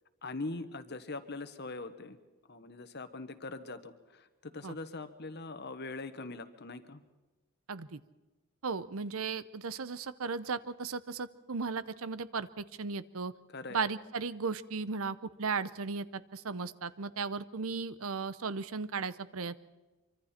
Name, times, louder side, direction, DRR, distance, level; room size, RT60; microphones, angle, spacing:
voice 1, 0.2-2.2 2.5-7.0 13.5-13.8, left 3 dB, 50° left, 10 dB, 1.3 m, -42 dB
voice 2, 7.7-8.0 8.6-13.3 13.7-19.6, right 4 dB, 70° right, 15 dB, 0.8 m, -36 dB
25.0 x 24.5 x 4.4 m, 1.1 s
head